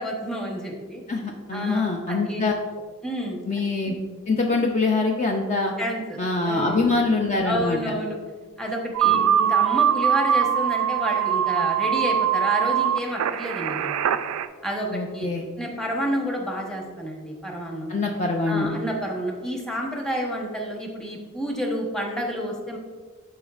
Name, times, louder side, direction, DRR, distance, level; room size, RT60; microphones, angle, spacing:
voice 1, 0.0-1.0 1.5-2.4 3.0-3.4 5.8-6.2 6.5-6.8 7.4-8.2 8.6-14.0 14.6-14.9 15.1-15.3 15.6-17.9 18.5-22.8, equal, 5° left, -1 dB, 0.9 m, -29 dB
voice 2, 1.1-2.5 3.5-4.0 4.3-5.7 6.2-7.9 9.0-9.3 14.9-15.5 17.9-18.7, left 3 dB, 30° left, 1 dB, 0.4 m, -24 dB
sound 1, 8.9-14.5, right 9 dB, 75° right, 0.3 m, -22 dB
12.0 x 4.1 x 2.4 m, 1.5 s
head